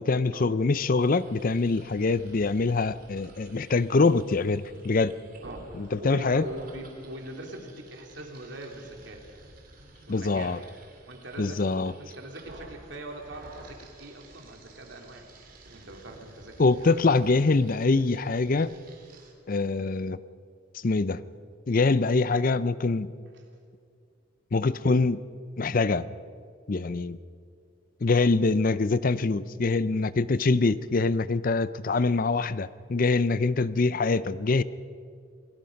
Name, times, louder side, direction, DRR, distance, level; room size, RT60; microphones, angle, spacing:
voice 1, 0.0-5.1 5.7-6.4 10.1-10.6 11.4-11.9 16.6-18.7 19.5-20.2 20.7-21.2 21.7-23.1 24.5-25.2 25.6-26.1 26.7-27.2 28.0-34.6, left 3 dB, 45° left, 16 dB, 0.5 m, -24 dB
sound 1, 1.0-19.3, right 2 dB, 45° right, 3.2 m, -51 dB
voice 2, 5.4-9.2 10.1-10.7 11.1-15.3 15.6-16.9 17.3-17.4 23.3-23.5, right 1 dB, 65° right, 2 dB, 3.1 m, -42 dB
28.0 x 18.0 x 5.3 m, 2.2 s
head